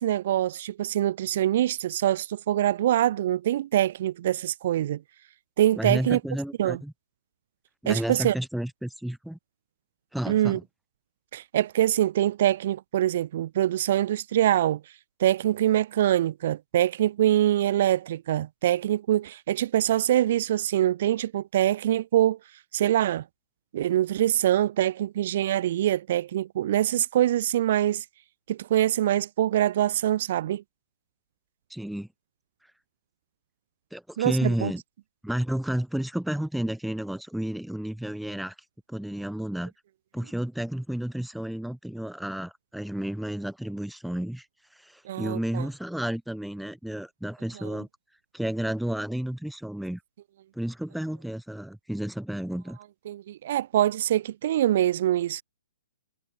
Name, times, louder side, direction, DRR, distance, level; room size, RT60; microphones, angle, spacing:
voice 1, 0.0-5.0 5.6-6.2 6.6-6.8 7.9-8.3 10.3-10.6 11.3-14.8 15.2-22.4 22.7-23.2 23.7-28.0 28.5-30.6 34.2-34.7 45.1-45.7 53.1-55.4, right 12 dB, 50° right, 0.4 m, -24 dB
voice 2, 5.8-6.9 7.8-9.4 10.1-10.6 31.7-32.1 33.9-34.8 35.2-38.5 38.9-39.7 40.1-44.5 44.7-47.9 48.3-50.0 50.5-52.8, right 1 dB, ahead, 0.5 m, -31 dB
hypercardioid pair, 140°, 0 cm